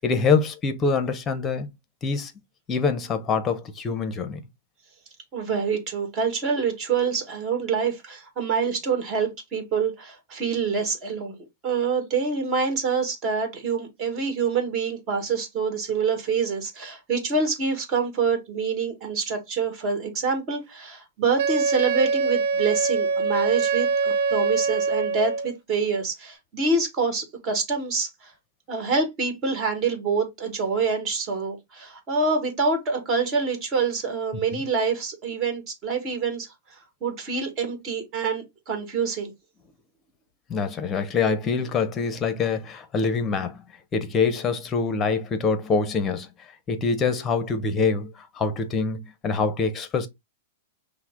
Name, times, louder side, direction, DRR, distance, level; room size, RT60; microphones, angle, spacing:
voice 1, 0.0-1.7 2.0-2.3 2.7-4.4 34.5-34.6 40.5-43.6 43.9-46.3 46.7-50.1, left 4 dB, 20° left, 0.8 m, -25 dB
voice 2, 5.3-11.4 11.6-28.3 28.7-39.3, right 5 dB, 30° right, 1.7 m, -26 dB
Wind instrument woodwind instrument, 21.4-25.5, right 4 dB, 60° right, 0.6 m, -24 dB
5.8 x 2.1 x 3.7 m
hypercardioid pair, 145°, 0 cm